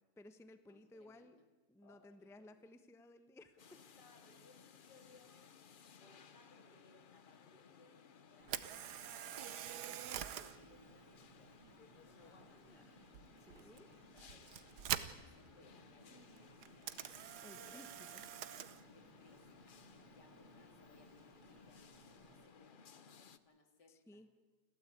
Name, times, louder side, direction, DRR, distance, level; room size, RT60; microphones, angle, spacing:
voice 1, 0.0-1.4 1.7-3.6 12.2-13.9 14.1-14.3 17.4-18.2 23.9-24.3, left 1 dB, ahead, 10 dB, 0.8 m, -59 dB
voice 2, 0.7-1.4 1.8-2.7 3.7-5.6 6.0-8.9 9.2-11.7 12.0-12.6 13.4-14.6 15.0-17.0 17.5-18.0 18.9-22.0 22.2-24.4, left 3 dB, 75° left, 5 dB, 3.2 m, -67 dB
sound 1, 3.6-23.4, left 6 dB, 45° left, 0.7 m, -61 dB
Camera, 8.4-22.5, right 10 dB, 70° right, 1.4 m, -48 dB
29.5 x 13.0 x 8.5 m, 1.3 s
omnidirectional pair, 1.8 m